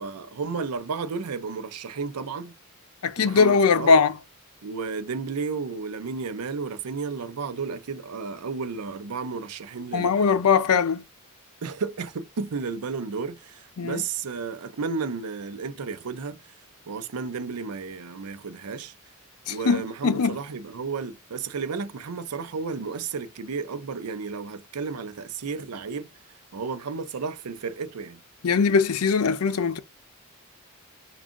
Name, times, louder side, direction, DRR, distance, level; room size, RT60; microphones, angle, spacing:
voice 1, 0.0-2.5 3.2-3.9 4.6-10.5 11.6-16.4 16.9-18.9 19.5-26.1 26.5-28.2, right 5 dB, 90° right, 0.6 m, -33 dB
voice 2, 3.0-4.1 9.9-11.0 13.8-14.0 19.5-20.4 28.4-29.8, left 5 dB, 75° left, 0.5 m, -21 dB
3.6 x 2.4 x 3.7 m
head